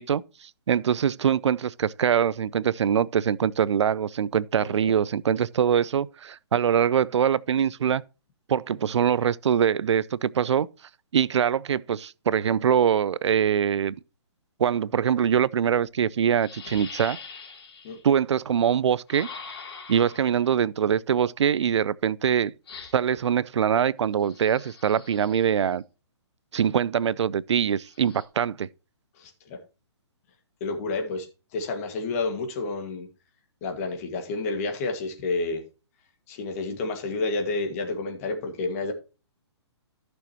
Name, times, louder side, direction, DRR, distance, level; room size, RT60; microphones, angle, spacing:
voice 1, 0.0-8.0 8.5-10.7 11.1-13.9 14.6-17.2 18.0-19.3 19.9-22.5 22.9-25.8 26.5-28.7, right 8 dB, 80° right, 0.4 m, -23 dB
voice 2, 4.6-4.9 17.8-18.0 29.2-29.6 30.6-31.3 31.5-33.1 33.6-35.6 36.3-38.9, left 3 dB, 30° left, 1.8 m, -30 dB
sound 1, 16.4-18.0 19.1-20.5 22.7-23.2 24.2-25.6 27.8-28.2, left 5 dB, 60° left, 3.0 m, -43 dB
14.5 x 6.3 x 2.9 m
hypercardioid pair, 160°, 15 cm